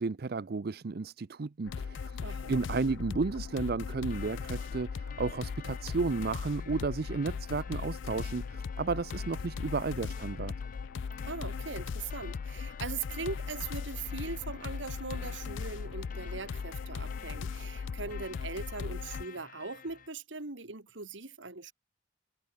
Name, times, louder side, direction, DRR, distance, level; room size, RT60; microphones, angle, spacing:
voice 1, 0.0-2.2 2.5-10.5, right 4 dB, 50° right, 0.5 m, -33 dB
sound 1, 1.7-19.2, left 5 dB, 70° left, 0.4 m, -38 dB
voice 2, 2.2-2.6 11.2-21.7, right 4 dB, 70° right, 2.0 m, -40 dB
sound 2, 4.1-20.1, left 6 dB, 45° left, 3.1 m, -52 dB
head